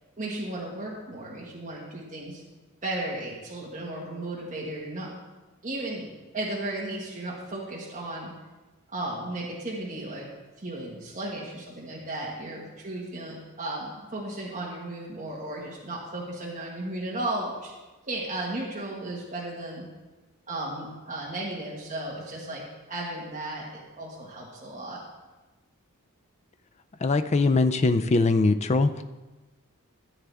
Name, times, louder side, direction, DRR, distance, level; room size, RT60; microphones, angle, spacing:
voice 1, 0.2-2.4 2.8-5.1 5.6-6.1 6.3-8.3 8.9-10.3 10.6-17.7 18.0-19.8 20.5-22.6 22.9-25.0, right 1 dB, 35° right, -4 dB, 1.7 m, -35 dB
voice 2, 27.0-29.0, left 3 dB, 30° left, 10 dB, 0.4 m, -22 dB
14.5 x 8.0 x 3.5 m, 1.2 s
head